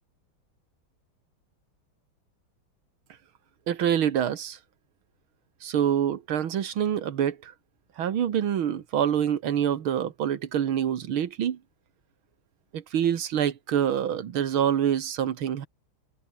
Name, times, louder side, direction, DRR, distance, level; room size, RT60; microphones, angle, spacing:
voice 1, 3.7-4.6 5.6-7.5 8.0-11.6 12.7-15.7, right 9 dB, 75° right, 2.3 m, -26 dB
omnidirectional pair, 2.3 m